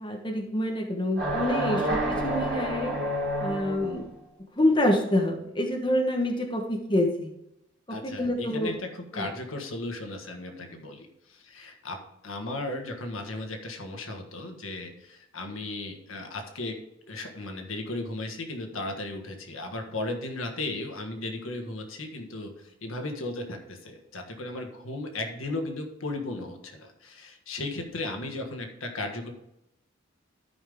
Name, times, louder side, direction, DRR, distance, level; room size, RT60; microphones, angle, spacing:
voice 1, 0.0-2.9 3.4-4.1 4.6-7.3 7.9-8.7 9.1-9.3, left 1 dB, 20° left, 1 dB, 1.1 m, -27 dB
sound 1, 1.2-4.0, right 1 dB, 60° right, 3.5 m, -29 dB
voice 2, 7.9-12.0 12.2-16.8 17.1-29.3, left 2 dB, 85° left, 4 dB, 1.6 m, -36 dB
13.0 x 5.5 x 3.6 m, 0.84 s
head